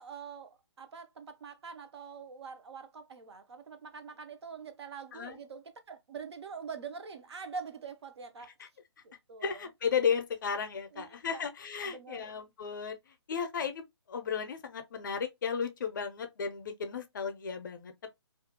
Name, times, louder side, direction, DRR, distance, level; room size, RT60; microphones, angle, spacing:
voice 1, 0.0-8.5 9.0-9.6 10.9-11.4 11.8-12.3, right 5 dB, 65° right, 0.6 m, -45 dB
voice 2, 9.4-13.0 13.3-13.8 14.1-18.1, left 6 dB, 45° left, 0.4 m, -34 dB
2.3 x 2.1 x 2.7 m
hypercardioid pair, 165°, 15 cm